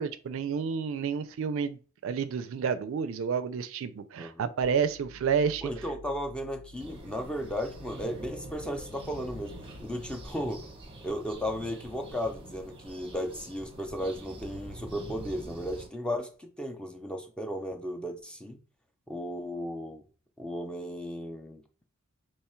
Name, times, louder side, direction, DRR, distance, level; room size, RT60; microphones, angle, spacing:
voice 1, 0.0-5.7, right 6 dB, 65° right, 0.4 m, -30 dB
sound 1, 4.6-10.3, left 2 dB, 75° left, 1.1 m, -51 dB
voice 2, 5.6-9.5 9.8-10.7 11.0-18.6 19.1-20.0 20.4-21.6, equal, 5° left, 0.4 m, -35 dB
sound 2, 6.8-15.9, right 1 dB, 25° right, 0.8 m, -45 dB
3.1 x 2.2 x 4.3 m
head